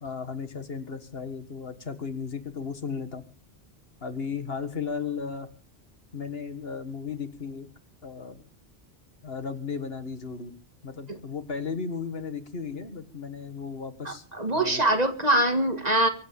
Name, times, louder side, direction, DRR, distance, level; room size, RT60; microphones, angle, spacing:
voice 1, 0.0-3.2 4.0-5.5 6.1-7.7 8.0-8.4 9.2-10.5 10.8-14.2 14.5-14.8, left 5 dB, 65° left, 9 dB, 1.9 m, -35 dB
voice 2, 14.1-16.1, right 1 dB, 40° right, 7 dB, 2.0 m, -23 dB
23.5 x 8.3 x 7.1 m, 0.40 s
omnidirectional pair, 1.1 m